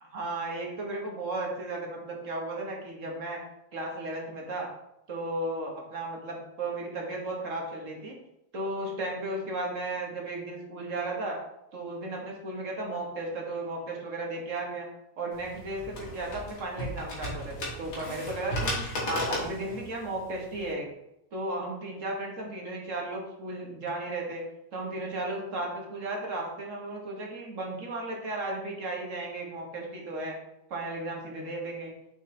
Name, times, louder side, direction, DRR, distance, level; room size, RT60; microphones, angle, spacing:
voice 1, 0.1-3.4 3.7-4.7 5.1-8.1 8.5-11.4 11.7-14.9 15.2-18.8 19.1-20.9 21.3-24.5 24.7-30.4 30.7-31.9, right 2 dB, 45° right, -1 dB, 1.5 m, -35 dB
sound 1, 15.3-20.7, equal, 70° left, 2.3 m, -35 dB
6.1 x 5.4 x 3.2 m, 0.87 s
omnidirectional pair, 2.2 m